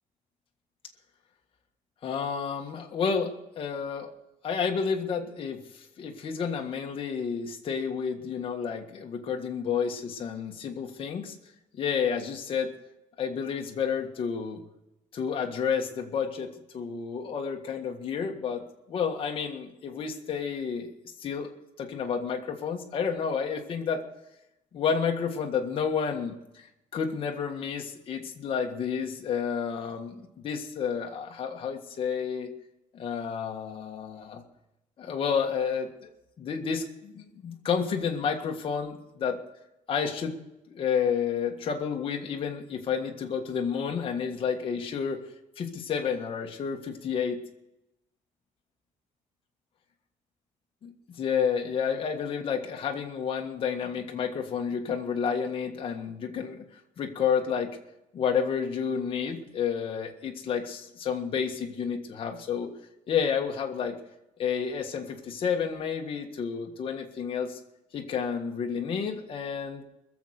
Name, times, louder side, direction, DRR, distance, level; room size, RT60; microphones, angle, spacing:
voice 1, 2.0-4.1 4.4-11.3 11.7-12.7 13.2-14.6 15.1-18.6 18.9-20.9 21.2-21.5 21.8-24.0 24.7-32.5 32.9-34.4 35.0-36.1 36.4-39.4 39.9-40.4 40.7-45.3 45.6-47.4 50.8-56.6 57.0-57.8 58.1-62.7 63.1-64.0 64.4-67.6 67.9-69.8, left 6 dB, 40° left, 2 dB, 1.7 m, -30 dB
21.5 x 7.4 x 6.6 m, 0.90 s
cardioid pair, 170°, 13 cm